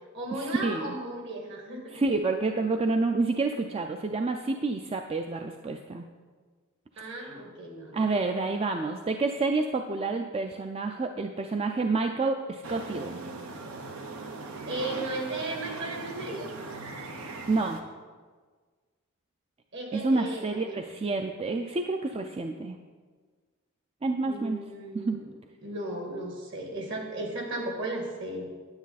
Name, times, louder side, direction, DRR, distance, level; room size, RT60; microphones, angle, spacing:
voice 1, 0.1-2.0 7.0-8.1 14.7-16.5 19.7-21.0 24.3-25.3 25.6-28.5, right 2 dB, 60° right, 1 dB, 1.9 m, -35 dB
voice 2, 1.9-6.1 7.9-13.2 17.5-17.8 19.9-22.8 24.0-24.6 24.9-25.2, right 3 dB, 25° right, 5 dB, 0.4 m, -28 dB
sound 1, 12.6-17.8, right 3 dB, 85° right, 0.9 m, -39 dB
9.7 x 9.3 x 4.1 m, 1.5 s
head